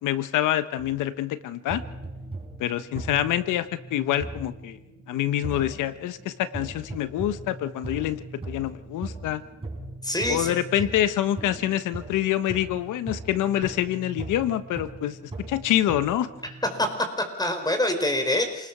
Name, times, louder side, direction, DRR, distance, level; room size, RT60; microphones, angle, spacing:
voice 1, 0.0-1.8 2.6-4.8 5.1-9.4 10.3-15.2 15.5-16.3, left 12 dB, 90° left, 13 dB, 1.3 m, -26 dB
sound 1, 0.8-1.3 1.7-17.0, right 2 dB, 20° right, 5.7 m, -39 dB
voice 2, 10.0-10.6 16.8-16.9 17.2-18.7, left 1 dB, 15° left, 6 dB, 4.8 m, -25 dB
28.0 x 20.0 x 6.2 m, 0.87 s
cardioid pair, 90°, 30 cm